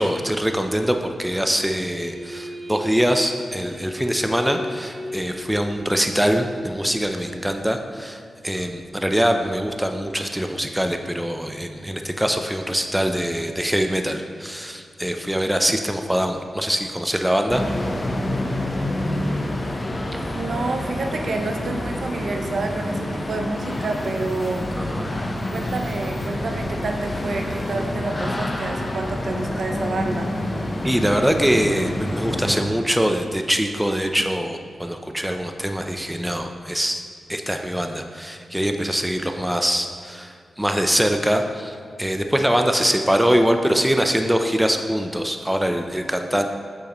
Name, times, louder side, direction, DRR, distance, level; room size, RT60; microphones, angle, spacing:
voice 1, 0.0-17.6 20.1-20.2 24.8-25.1 30.8-37.0 37.3-46.5, equal, 5° right, 5 dB, 0.5 m, -23 dB
sound 1, 1.7-7.6, left 1 dB, 30° right, 1.2 m, -37 dB
sound 2, 17.5-32.6, left 1 dB, 25° left, 0.8 m, -27 dB
voice 2, 20.3-24.7 25.5-30.3, right 3 dB, 65° right, 4 dB, 0.6 m, -29 dB
8.5 x 6.3 x 3.0 m, 2.3 s
cardioid pair, 80°, 0 cm